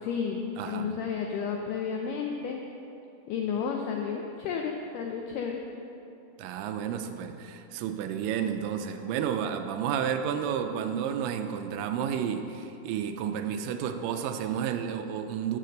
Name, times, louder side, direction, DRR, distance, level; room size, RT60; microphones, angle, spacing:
voice 1, 0.0-2.6 3.3-5.6, left 6 dB, 85° left, 2 dB, 1.8 m, -32 dB
voice 2, 0.6-1.0 6.4-15.6, right 8 dB, 85° right, 6 dB, 1.9 m, -31 dB
6.6 x 6.5 x 6.5 m, 2.8 s
omnidirectional pair, 4.4 m